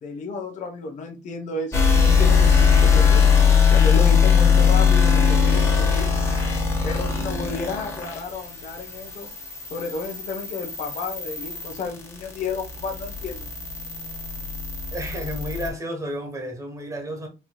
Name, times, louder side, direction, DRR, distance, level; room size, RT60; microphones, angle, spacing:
voice 1, 0.0-3.2 3.7-6.1 6.8-9.3 9.7-13.5, left 4 dB, 45° left, 0.9 m, -32 dB
sound 1, 1.7-15.7, left 6 dB, 15° left, 1.3 m, -20 dB
voice 2, 14.9-17.3, equal, 20° right, 1.4 m, -31 dB
4.7 x 2.8 x 2.3 m
cardioid pair, 110°, 17 cm